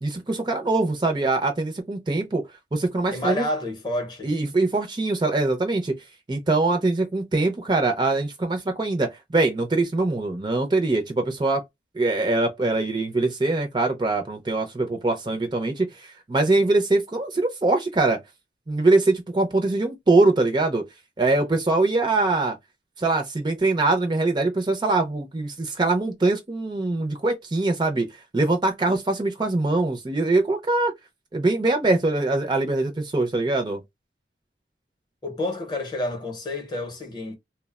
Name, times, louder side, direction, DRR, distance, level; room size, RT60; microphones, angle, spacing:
voice 1, 0.0-2.4 2.7-3.5 4.2-6.0 6.3-11.6 11.9-18.2 18.7-20.9 21.2-22.6 23.0-28.1 28.3-30.9 31.3-33.8, right 2 dB, 25° right, 0.4 m, -23 dB
voice 2, 3.1-4.3 35.2-37.4, left 1 dB, 25° left, 0.7 m, -29 dB
3.1 x 2.0 x 2.2 m
head